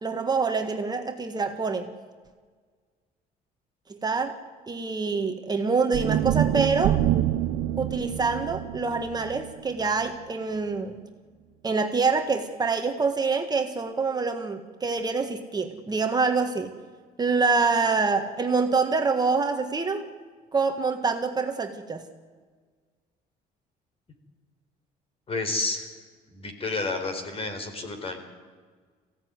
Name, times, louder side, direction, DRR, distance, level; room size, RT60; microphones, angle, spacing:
voice 1, 0.0-1.9 4.0-4.4 4.7-7.0 7.8-10.9 11.6-16.7 17.2-20.1 20.5-22.1, right 4 dB, 25° right, 4 dB, 1.6 m, -26 dB
sound 1, 5.9-10.2, right 12 dB, 70° right, 0.7 m, -26 dB
voice 2, 25.3-25.9 26.3-28.2, left 3 dB, 35° left, 7 dB, 4.4 m, -30 dB
21.5 x 16.5 x 9.6 m, 1.5 s
cardioid pair, 110°, 17 cm